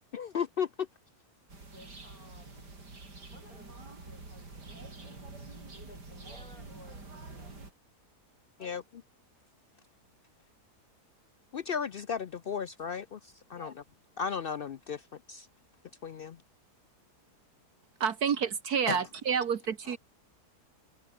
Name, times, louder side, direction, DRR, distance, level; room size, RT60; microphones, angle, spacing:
voice 1, 0.1-0.7 8.6-8.8 11.5-13.2 13.5-13.7 14.2-15.0 15.3-15.4 16.0-16.4 18.9-19.0, left 7 dB, 75° left, 0.5 m, -34 dB
sound 1, 1.5-7.7, right 3 dB, 85° right, 5.4 m, -47 dB
voice 2, 1.7-2.8 3.2-7.6 8.6-8.8 13.5-13.8, left 2 dB, 60° left, 7.8 m, -57 dB
voice 3, 18.0-20.0, right 7 dB, 70° right, 1.8 m, -29 dB
omnidirectional pair, 1.7 m